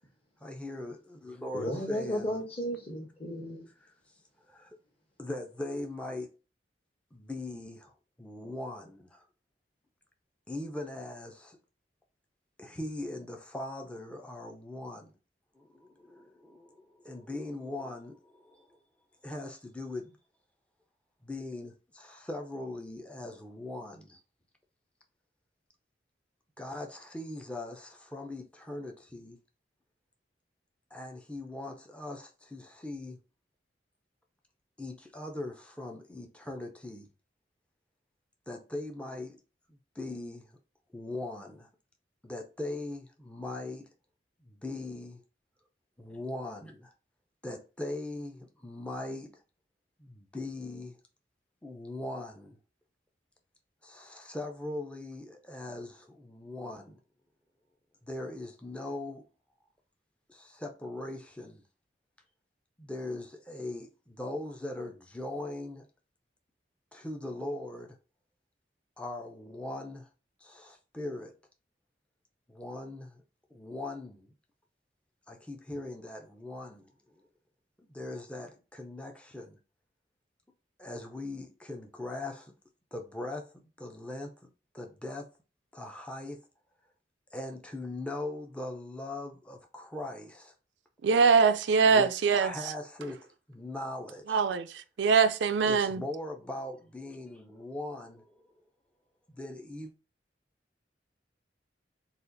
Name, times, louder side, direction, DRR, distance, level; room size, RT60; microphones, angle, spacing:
voice 1, 0.4-2.3 3.8-3.9 4.5-4.8 5.2-6.4 7.1-9.2 10.5-11.6 12.6-15.1 15.5-18.8 19.2-20.2 21.2-24.2 26.6-29.4 30.9-33.2 34.8-37.1 38.5-39.4 39.7-40.6 40.9-41.7 42.2-43.9 44.4-45.2 46.0-46.9 47.4-49.4 50.0-51.0 51.6-52.6 53.8-57.0 58.0-59.2 60.3-61.6 62.8-65.8 66.9-68.0 69.0-70.1 70.4-71.3 72.5-73.2 73.5-74.3 75.3-77.2 77.8-79.6 80.8-82.5 82.9-85.3 85.7-86.4 87.3-90.5 91.9-92.1 92.4-94.4 95.7-98.5 99.3-99.9, left 2 dB, 5° left, 0.6 m, -40 dB
voice 2, 1.5-3.6, equal, 30° left, 1.2 m, -34 dB
voice 3, 91.0-92.5 94.3-96.0, right 5 dB, 85° right, 0.4 m, -23 dB
4.1 x 2.4 x 3.9 m
head